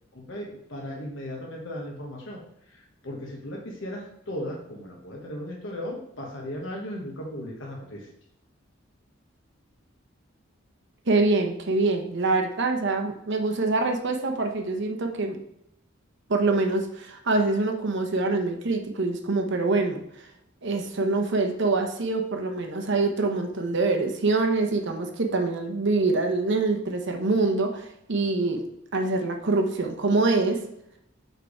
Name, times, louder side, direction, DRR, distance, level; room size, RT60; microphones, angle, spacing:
voice 1, 0.1-2.4 2.7-8.1, left 1 dB, 70° left, -1 dB, 1.1 m, -36 dB
voice 2, 11.1-15.4 16.3-20.0 20.6-28.6 28.9-30.6, right 3 dB, 60° right, 4 dB, 0.9 m, -25 dB
6.6 x 4.5 x 4.8 m, 0.77 s
head